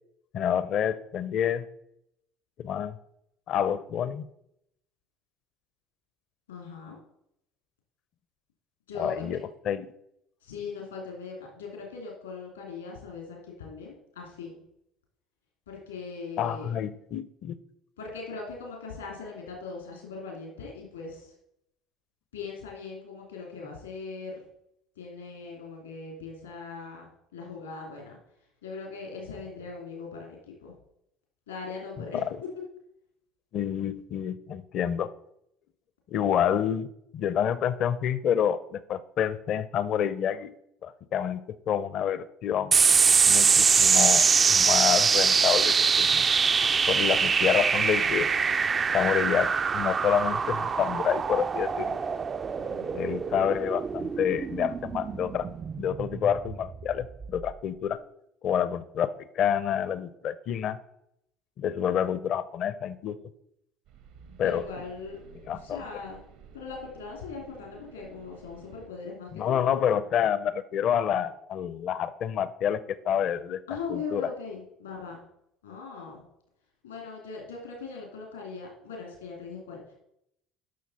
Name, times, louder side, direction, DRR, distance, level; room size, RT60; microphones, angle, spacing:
voice 1, 0.3-1.7 2.6-3.0 3.5-4.2 8.9-9.9 16.4-17.6 32.0-32.4 33.5-35.1 36.1-36.9 37.1-40.5 40.8-42.7 43.3-46.2 46.9-48.3 48.9-52.0 52.9-55.5 55.8-58.0 58.4-60.8 61.6-63.2 64.4-64.7 65.5-65.8 69.3-73.6 73.9-74.3, left 9 dB, 55° left, 15 dB, 0.6 m, -28 dB
voice 2, 6.5-7.0 8.9-9.4 10.4-14.6 15.7-16.7 18.0-21.3 22.3-24.4 25.0-28.2 28.6-30.7 31.5-32.2 52.6-53.1 64.4-65.2 65.6-66.2 66.5-69.8 73.7-75.2 75.6-76.2 76.8-79.9, left 4 dB, 85° left, 0 dB, 2.7 m, -40 dB
sound 1, 42.7-57.5, right 5 dB, 35° right, 0.4 m, -24 dB
sound 2, 63.9-68.9, right 6 dB, 70° right, 1.1 m, -52 dB
11.5 x 6.2 x 4.2 m, 0.77 s
hypercardioid pair, 65°, 0 cm